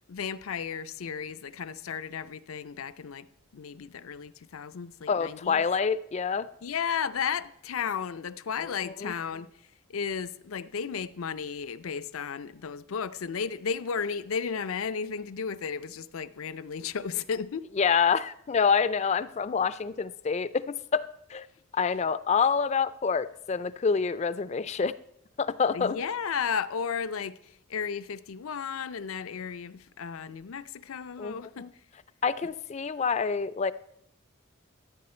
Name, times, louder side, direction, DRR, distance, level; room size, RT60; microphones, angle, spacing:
voice 1, 0.1-3.3 3.5-5.7 6.6-9.5 9.9-17.7 25.7-27.4 27.7-31.7, left 6 dB, 85° left, 0.5 m, -34 dB
voice 2, 5.1-6.5 8.6-9.1 17.8-21.5 21.7-24.9 25.4-26.0 31.2-31.7 32.2-33.7, left 6 dB, 30° left, 0.3 m, -27 dB
14.0 x 8.6 x 4.3 m
head